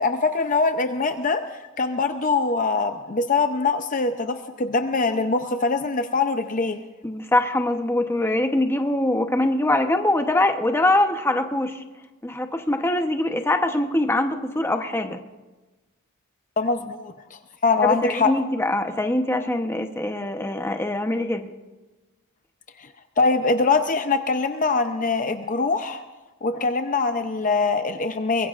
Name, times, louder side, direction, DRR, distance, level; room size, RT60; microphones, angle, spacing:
voice 1, 0.0-1.4 1.8-6.8 16.6-18.3 22.8-22.9 23.2-26.0 26.4-28.5, left 4 dB, 35° left, 7 dB, 0.6 m, -23 dB
voice 2, 7.0-11.8 12.2-15.2 17.8-21.5, left 1 dB, 10° left, 6 dB, 0.9 m, -23 dB
23.5 x 21.5 x 2.5 m, 1.2 s
head